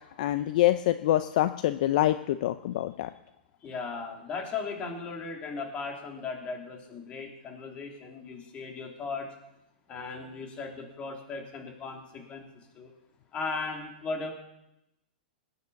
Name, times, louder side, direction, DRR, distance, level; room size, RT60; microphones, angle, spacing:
voice 1, 0.2-3.1, left 14 dB, 55° left, 12 dB, 0.6 m, -25 dB
voice 2, 3.6-9.3 9.9-12.5 12.7-12.9 13.3-14.3, left 4 dB, 25° left, 2 dB, 3.4 m, -37 dB
19.5 x 9.6 x 7.1 m, 0.88 s
hypercardioid pair, 145°, 5 cm